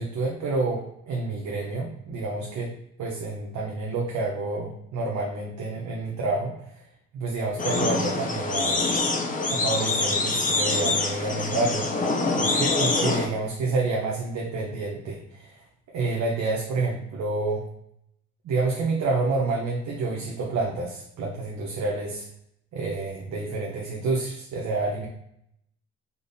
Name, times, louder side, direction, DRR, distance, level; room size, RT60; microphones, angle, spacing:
voice 1, 0.0-2.7 3.0-6.5 7.1-8.9 9.5-11.9 12.4-15.6 15.9-17.7 18.4-22.3 22.7-25.1, right 3 dB, 65° right, -2 dB, 0.7 m, -28 dB
sound 1, 7.6-13.3, left 3 dB, 25° left, 0.6 m, -25 dB
3.5 x 2.0 x 3.8 m, 0.75 s
cardioid pair, 90°, 30 cm